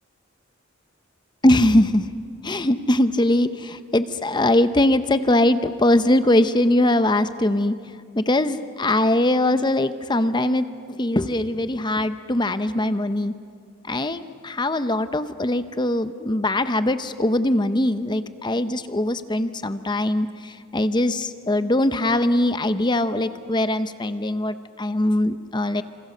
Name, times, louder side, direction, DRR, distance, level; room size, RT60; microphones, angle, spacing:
voice 1, 1.4-2.1 2.4-13.3 13.8-25.8, left 1 dB, 20° left, 11 dB, 0.7 m, -21 dB
27.5 x 26.5 x 6.7 m, 2.2 s
head